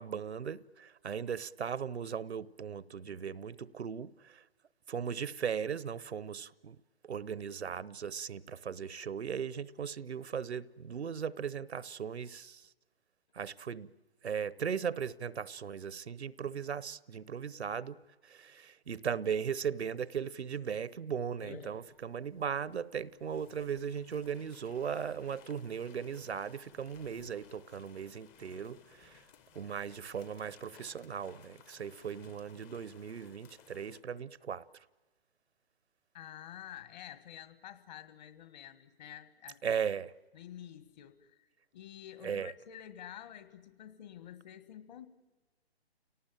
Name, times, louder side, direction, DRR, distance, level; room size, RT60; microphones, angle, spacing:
voice 1, 0.0-4.4 4.9-6.8 7.0-12.6 13.3-13.9 14.2-29.2 29.5-34.6 39.6-40.1 42.2-42.5, right 7 dB, 80° right, 0.9 m, -38 dB
sound 1, 21.4-30.9, left 4 dB, 65° left, 7.5 m, -59 dB
sound 2, 23.2-34.0, left 8 dB, 20° left, 0.8 m, -60 dB
voice 2, 36.1-39.8 40.3-41.5 41.7-45.1, left 11 dB, 40° left, 1.7 m, -49 dB
29.5 x 18.5 x 9.0 m
figure-of-eight pair, 135°, 32 cm